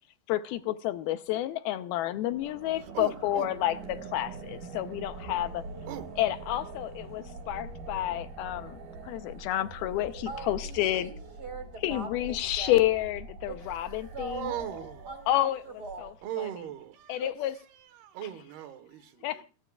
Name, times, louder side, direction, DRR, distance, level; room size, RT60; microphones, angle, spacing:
voice 1, 0.3-5.6 6.2-8.8 9.1-11.1 11.8-14.5 15.3-15.6 16.0-16.1 17.1-17.5 19.2-19.5, left 14 dB, 80° left, 2.7 m, -30 dB
sound 1, 2.3-16.4, right 3 dB, 60° right, 6.9 m, -44 dB
voice 2, 2.8-3.5 5.9-6.1 14.3-15.1 16.2-17.2 17.7-19.5, right 11 dB, 85° right, 3.3 m, -39 dB
voice 3, 10.3-12.9 13.5-16.2 17.2-17.3, right 3 dB, 30° right, 2.6 m, -42 dB
29.5 x 12.5 x 2.4 m
omnidirectional pair, 4.4 m